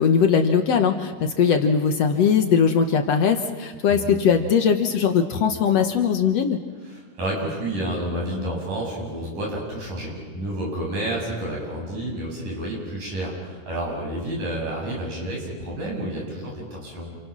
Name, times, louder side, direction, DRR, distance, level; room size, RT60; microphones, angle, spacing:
voice 1, 0.0-6.6, left 6 dB, 60° left, 5 dB, 2.1 m, -20 dB
voice 2, 6.8-17.2, right 1 dB, 80° right, -2 dB, 9.1 m, -30 dB
30.0 x 28.0 x 6.2 m, 1.5 s
omnidirectional pair, 3.6 m